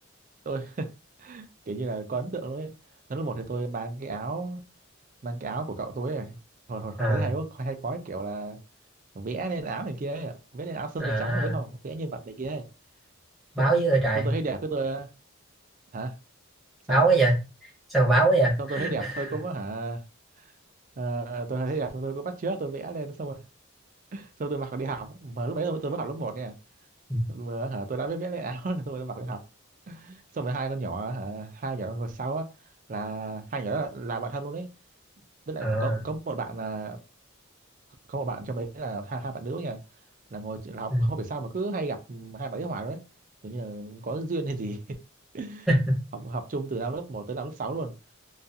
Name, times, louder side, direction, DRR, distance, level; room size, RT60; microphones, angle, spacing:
voice 1, 0.5-0.9 1.2-2.7 3.1-4.6 5.2-6.4 6.7-8.6 9.1-12.6 13.6-13.7 14.1-15.1 15.9-16.1 16.9-17.0 18.6-20.0 21.0-23.4 24.1-26.5 27.3-29.4 29.9-32.4 32.9-34.7 35.5-37.0 38.1-39.8 40.3-43.0 43.4-45.0 45.3-45.7 46.1-47.9, right 3 dB, 40° right, 0.4 m, -32 dB
voice 2, 11.0-11.5 13.5-14.3 16.9-17.4 17.9-19.2 27.1-27.2 35.6-36.0 40.9-41.1 45.7-45.8, right 2 dB, ahead, 0.8 m, -23 dB
2.4 x 2.3 x 2.6 m
head